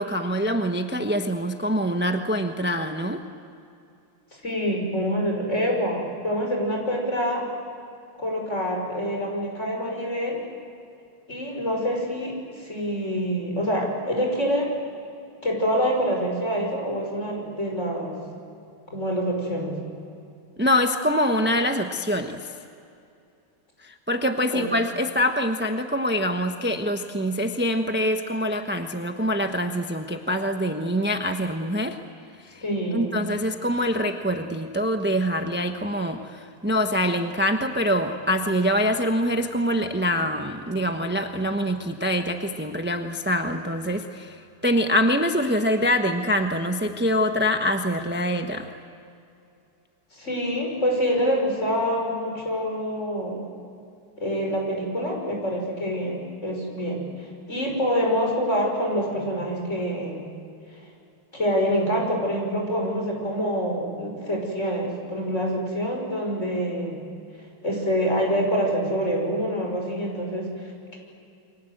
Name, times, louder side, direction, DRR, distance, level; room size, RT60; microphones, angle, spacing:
voice 1, 0.0-3.2 20.6-22.5 23.8-32.0 32.5-32.6 32.9-44.4 44.6-48.7, equal, 10° right, 5 dB, 0.6 m, -24 dB
voice 2, 4.4-7.5 8.2-10.4 11.3-14.7 15.4-18.2 18.9-19.8 24.5-24.6 32.6-33.2 50.1-53.4 54.2-60.3 61.3-67.1 67.6-71.0, equal, 30° left, 0 dB, 6.3 m, -26 dB
29.5 x 24.0 x 8.0 m, 2.6 s
omnidirectional pair, 2.3 m